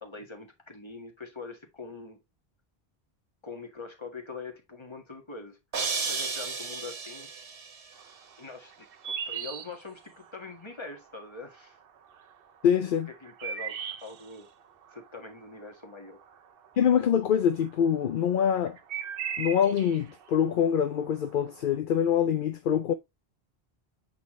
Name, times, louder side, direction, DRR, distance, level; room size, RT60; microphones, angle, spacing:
voice 1, 0.0-2.2 3.4-5.6 6.1-7.3 8.4-11.8 13.2-14.5 14.9-16.2, left 4 dB, 25° left, 1.7 m, -43 dB
sound 1, 5.7-7.8, right 5 dB, 80° right, 1.5 m, -33 dB
sound 2, 8.0-10.6 11.0-11.7 12.0-17.1 17.4-21.7, right 7 dB, 65° right, 0.9 m, -38 dB
voice 2, 12.6-13.1 16.8-18.8 19.4-22.9, left 8 dB, 60° left, 0.7 m, -25 dB
8.2 x 4.2 x 3.1 m
omnidirectional pair, 1.1 m